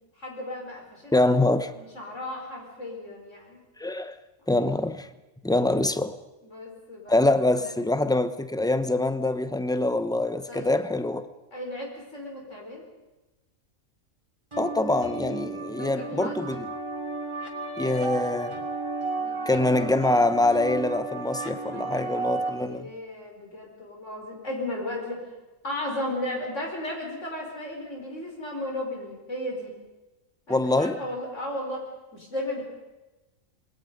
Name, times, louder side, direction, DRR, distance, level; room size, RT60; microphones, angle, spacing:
voice 1, 0.2-1.3 1.7-3.6 6.4-7.2 7.6-7.7 10.5-10.9 11.5-12.8 15.7-16.5 19.1-19.8 21.6-25.3 25.6-29.7 30.5-31.8 32.1-32.6, left 1 dB, 60° left, 5.2 m, -35 dB
voice 2, 1.1-1.7 3.8-4.1 4.5-5.1 5.4-6.2 7.1-11.3 14.6-16.7 17.8-18.5 19.5-22.9 30.5-31.0, left 2 dB, 5° left, 0.6 m, -24 dB
sound 1, 14.5-22.5, right 3 dB, 20° right, 2.9 m, -33 dB
27.5 x 21.0 x 5.3 m
omnidirectional pair, 1.4 m